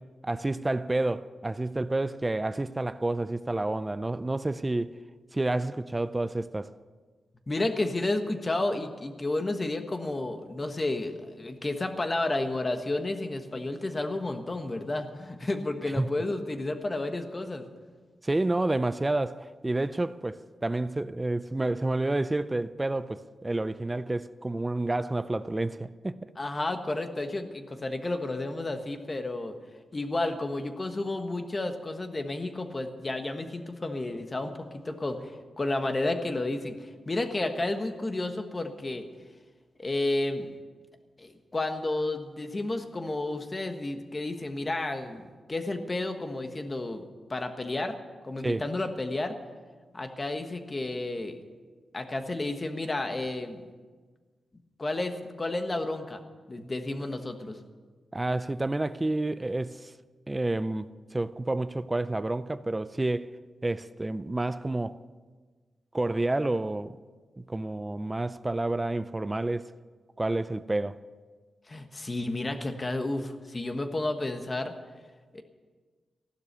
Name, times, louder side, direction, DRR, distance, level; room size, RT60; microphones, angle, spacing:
voice 1, 0.0-5.0 5.3-6.7 16.0-16.1 18.2-26.3 48.4-48.6 58.1-59.9 60.3-63.3 63.6-65.0 65.9-67.0 67.4-69.7 70.2-71.0, right 2 dB, 15° right, 0.4 m, -29 dB
voice 2, 7.5-17.7 26.4-29.6 29.9-39.1 39.8-40.5 41.2-47.0 47.3-48.0 48.2-49.4 49.9-51.4 51.9-53.7 54.8-56.2 56.5-57.6 71.7-74.7 75.3-75.4, left 2 dB, 25° left, 1.3 m, -31 dB
15.5 x 12.0 x 6.7 m
wide cardioid pair, 135°, 0 cm